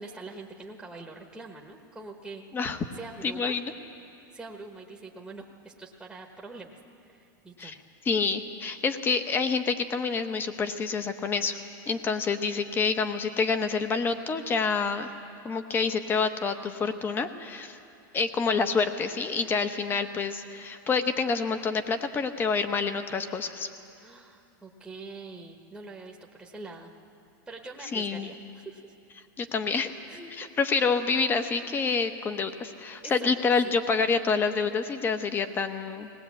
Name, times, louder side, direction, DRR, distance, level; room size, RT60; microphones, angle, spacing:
voice 1, 0.0-2.4 2.9-3.6 4.3-6.8 7.0-7.7 24.0-26.9 27.5-28.8 29.4-29.5 30.1-30.7 33.0-33.3, right 3 dB, 5° right, 0 dB, 1.2 m, -44 dB
voice 2, 3.2-3.7 7.6-7.8 8.0-11.6 11.9-15.1 15.4-17.8 18.1-23.7 27.9-28.3 29.4-29.9 30.4-36.1, left 5 dB, 20° left, 9 dB, 1.0 m, -27 dB
20.0 x 19.0 x 8.4 m, 2.6 s
supercardioid pair, 150°, 11 cm